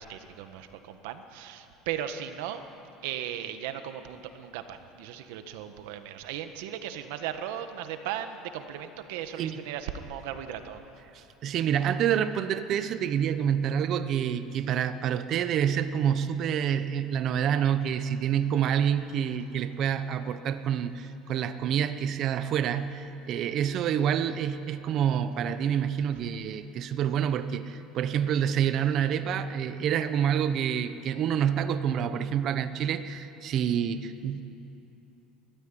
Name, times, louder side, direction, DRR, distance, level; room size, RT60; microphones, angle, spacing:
voice 1, 0.0-2.6 3.0-10.8, right 10 dB, 85° right, 8 dB, 1.5 m, -37 dB
voice 2, 11.1-34.4, right 9 dB, 40° right, 11 dB, 0.8 m, -27 dB
21.5 x 14.5 x 10.0 m, 2.9 s
cardioid pair, 160°, 0 cm